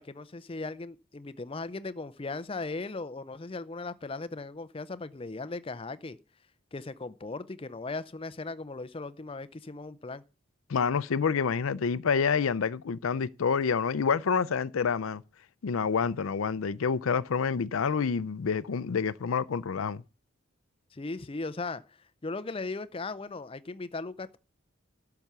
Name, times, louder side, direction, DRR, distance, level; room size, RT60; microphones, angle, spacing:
voice 1, 0.0-6.2 6.7-10.2 20.9-24.4, left 3 dB, 25° left, 0.5 m, -38 dB
voice 2, 10.7-15.2 15.6-20.0, left 6 dB, 85° left, 0.5 m, -28 dB
12.0 x 5.8 x 6.7 m
head